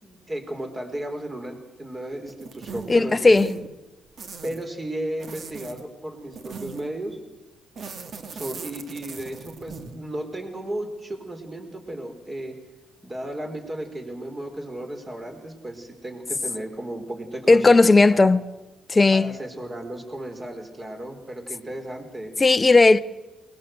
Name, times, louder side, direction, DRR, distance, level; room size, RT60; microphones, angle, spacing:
voice 1, 0.0-3.5 4.4-7.2 8.3-12.6 13.0-18.3 19.1-22.3, right 1 dB, 25° right, 4.3 m, -34 dB
sound 1, 2.3-3.0 3.3-3.7 4.2-4.6 5.2-5.8 6.3-7.0 7.8-10.0, right 5 dB, 55° right, 2.2 m, -39 dB
voice 2, 2.9-3.5 17.5-18.4 18.9-19.3 22.4-23.0, left 3 dB, 25° left, 0.8 m, -15 dB
21.0 x 20.5 x 8.0 m
cardioid pair, 90°, 0 cm